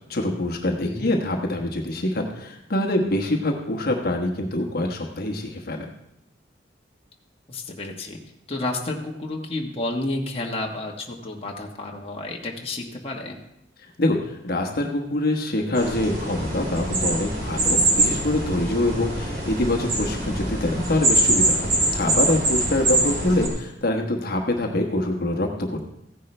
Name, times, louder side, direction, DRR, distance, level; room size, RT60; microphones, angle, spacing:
voice 1, 0.1-5.8 14.0-25.9, left 1 dB, 55° left, 2 dB, 1.2 m, -25 dB
voice 2, 7.5-8.2 8.5-13.4, left 2 dB, 30° left, -1 dB, 1.3 m, -31 dB
sound 1, 15.7-23.5, right 2 dB, 50° right, 2.8 m, -23 dB
15.0 x 10.0 x 3.3 m, 0.83 s
head